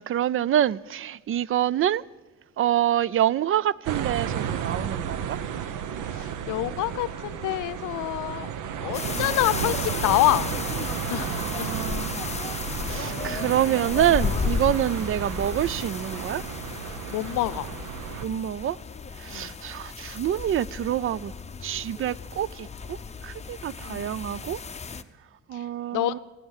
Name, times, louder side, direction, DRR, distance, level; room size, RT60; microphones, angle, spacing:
voice 1, 0.0-2.0 2.6-5.4 11.4-12.1 12.9-16.4 18.2-18.8 19.2-21.3 21.6-23.0 23.2-24.6 25.5-26.2, right 11 dB, 45° right, 0.4 m, -26 dB
sound 1, 3.9-18.3, right 8 dB, 85° right, 0.9 m, -33 dB
voice 2, 6.1-8.5 8.8-10.5 11.1-11.3 11.6-11.9 17.1-17.7 19.3-19.5 23.8-24.1 25.5-25.6 25.9-26.2, left 15 dB, 85° left, 0.6 m, -27 dB
sound 2, 8.9-25.0, left 5 dB, 20° left, 0.7 m, -34 dB
16.5 x 10.0 x 7.3 m
cardioid pair, 90°, 30 cm